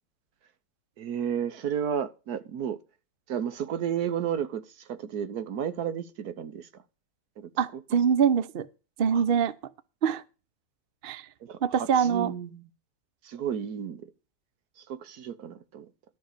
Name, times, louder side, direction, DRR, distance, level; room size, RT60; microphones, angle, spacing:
voice 1, 1.0-2.8 3.3-6.7 7.4-7.5 9.1-9.2 11.4-12.7 13.2-14.1 14.9-15.9, right 8 dB, 80° right, 1.5 m, -32 dB
voice 2, 7.6-8.7 9.0-9.5 10.0-10.2 11.0-11.3 11.6-12.3, right 7 dB, 50° right, 0.7 m, -24 dB
13.0 x 6.0 x 6.6 m
omnidirectional pair, 1.6 m